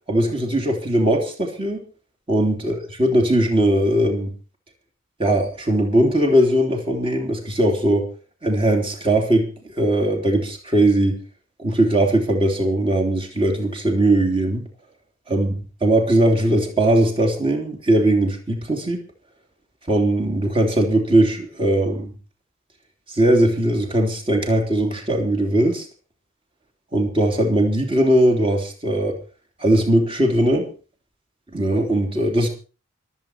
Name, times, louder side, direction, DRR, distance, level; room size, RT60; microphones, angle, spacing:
voice 1, 0.1-1.8 2.3-4.3 5.2-8.1 8.4-9.5 9.7-11.2 11.6-14.7 15.3-19.0 19.9-22.1 23.1-25.8 26.9-29.2 29.6-30.7 31.5-32.5, right 1 dB, 25° right, 1 dB, 3.2 m, -19 dB
24.5 x 8.5 x 4.5 m, 0.36 s
head